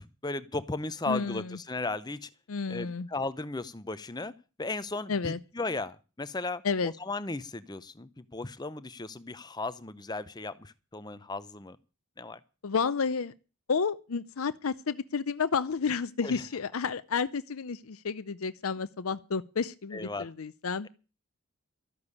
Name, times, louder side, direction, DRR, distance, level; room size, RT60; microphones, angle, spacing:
voice 1, 0.0-2.3 2.7-4.3 4.6-11.8 12.2-12.4 16.2-16.4 19.9-20.3, left 3 dB, 20° left, 0.7 m, -36 dB
voice 2, 1.1-1.6 2.5-3.1 5.1-5.4 6.6-6.9 12.6-13.3 13.7-20.9, left 5 dB, 75° left, 0.6 m, -31 dB
13.5 x 6.9 x 9.6 m
head